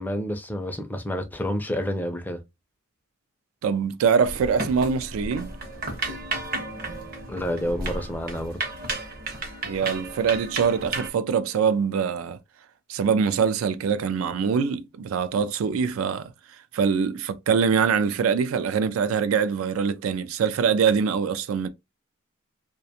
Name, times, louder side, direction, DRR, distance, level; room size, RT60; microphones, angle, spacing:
voice 1, 0.0-2.4 7.3-8.6, equal, 10° left, 0.4 m, -29 dB
voice 2, 3.6-5.5 9.6-12.4 12.9-16.3 16.7-21.7, right 6 dB, 85° right, 0.3 m, -23 dB
sound 1, 4.2-11.1, right 2 dB, 45° right, 0.7 m, -33 dB
2.4 x 2.2 x 2.7 m
head